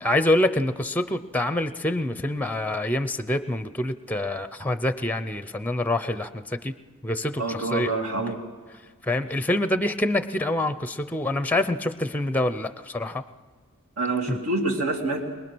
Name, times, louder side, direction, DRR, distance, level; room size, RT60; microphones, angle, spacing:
voice 1, 0.0-6.7 7.0-7.9 8.3-8.4 9.0-13.2 14.3-14.4, left 1 dB, 5° left, 12 dB, 0.6 m, -26 dB
voice 2, 7.4-8.4 14.0-15.2, right 2 dB, 75° right, 1 dB, 2.9 m, -26 dB
22.5 x 20.5 x 6.2 m, 1.5 s
head